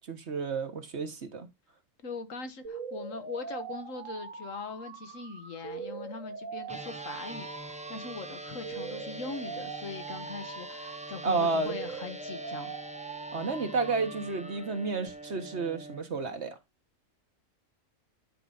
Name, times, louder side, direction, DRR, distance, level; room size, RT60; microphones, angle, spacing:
voice 1, 0.1-1.5 11.2-11.8 13.3-16.6, right 4 dB, 55° right, 1.6 m, -31 dB
voice 2, 2.0-12.7, left 4 dB, 70° left, 1.6 m, -41 dB
sound 1, 2.6-14.6, right 5 dB, 75° right, 2.0 m, -42 dB
sound 2, 6.7-16.0, right 2 dB, 10° right, 0.4 m, -43 dB
10.0 x 4.9 x 4.0 m
omnidirectional pair, 1.4 m